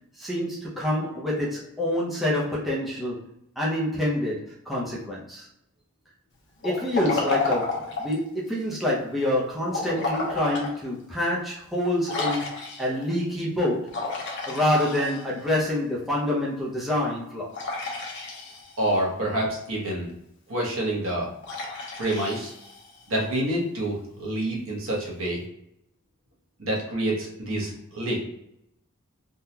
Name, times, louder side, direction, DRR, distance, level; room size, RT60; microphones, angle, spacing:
voice 1, 0.2-3.3 3.6-5.5 6.6-12.5 12.8-14.0 14.5-17.5, left 1 dB, ahead, -6 dB, 0.6 m, -27 dB
Liquid, 6.6-8.2 9.7-10.7 11.2-11.3 12.1-13.0 13.9-15.5 17.5-18.9 21.4-23.1, left 3 dB, 55° left, 0.8 m, -31 dB
voice 2, 18.8-20.1 20.5-21.3 22.0-22.5 23.1-25.4 26.6-28.2, right 1 dB, 65° right, -3 dB, 1.1 m, -27 dB
3.7 x 2.3 x 2.8 m, 0.77 s
head